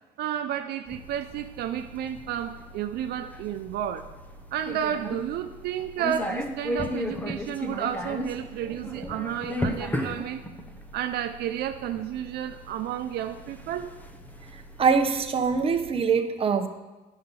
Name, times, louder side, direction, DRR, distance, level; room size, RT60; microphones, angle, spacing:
voice 1, 0.2-4.1 4.5-10.4 10.9-13.9, right 10 dB, 70° right, 7 dB, 0.6 m, -31 dB
sound 1, 0.9-15.9, left 1 dB, 10° left, 0.8 m, -36 dB
voice 2, 14.5-16.7, right 5 dB, 35° right, 6 dB, 0.9 m, -24 dB
9.7 x 5.7 x 6.8 m, 1.2 s
cardioid pair, 110°, 17 cm